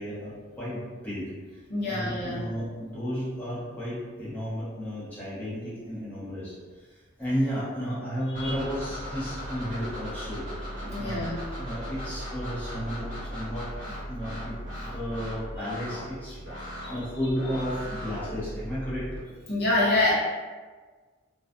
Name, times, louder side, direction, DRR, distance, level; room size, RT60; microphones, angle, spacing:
voice 1, 0.0-6.5 6.9-11.2 11.6-19.1, equal, 10° left, -11 dB, 0.8 m, -33 dB
voice 2, 1.7-2.4 8.3-8.5 10.8-11.4 16.8-16.9 19.5-20.1, left 2 dB, 50° left, -6 dB, 0.7 m, -26 dB
sound 1, 8.3-19.2, equal, 40° right, 0.8 m, -37 dB
2.3 x 2.2 x 2.4 m, 1.4 s
head